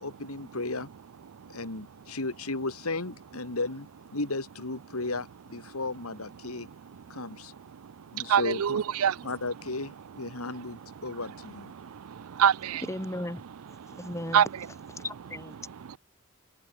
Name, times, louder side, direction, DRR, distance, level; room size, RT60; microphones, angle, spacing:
voice 1, 0.0-0.9 1.5-3.9 4.1-6.7 7.1-7.5 8.1-8.8 9.2-11.7, left 2 dB, 85° left, 2.7 m, -34 dB
voice 2, 7.7-9.3 10.3-10.4 11.7-12.8 13.8-14.7 15.0-15.1 15.7-16.0, right 8 dB, 80° right, 0.4 m, -27 dB
voice 3, 12.9-13.4 13.9-14.4 14.9-15.5, left 1 dB, 15° left, 2.8 m, -36 dB
head